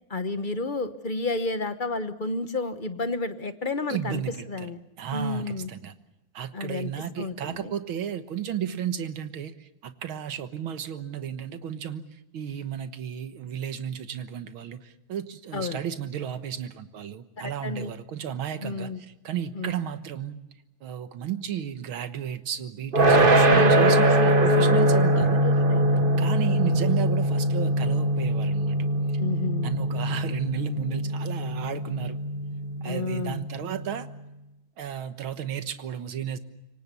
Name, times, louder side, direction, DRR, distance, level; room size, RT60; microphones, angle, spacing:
voice 1, 0.1-4.8 5.1-5.7 6.5-6.9 7.2-7.7 15.5-15.8 17.4-17.9 18.6-19.0 19.5-19.7 23.1-26.3 29.2-29.7 32.8-33.4, left 3 dB, 35° left, 10 dB, 0.9 m, -31 dB
voice 2, 3.9-4.7 5.0-5.9 6.3-12.1 12.3-18.9 19.2-20.4 20.8-25.4 25.8-25.9 26.2-28.8 29.6-32.2 32.8-34.1 34.8-36.4, right 9 dB, 80° right, 11 dB, 2.1 m, -33 dB
sound 1, 22.9-33.9, right 1 dB, 30° right, 1.4 m, -22 dB
27.0 x 24.0 x 6.9 m, 0.89 s
omnidirectional pair, 2.2 m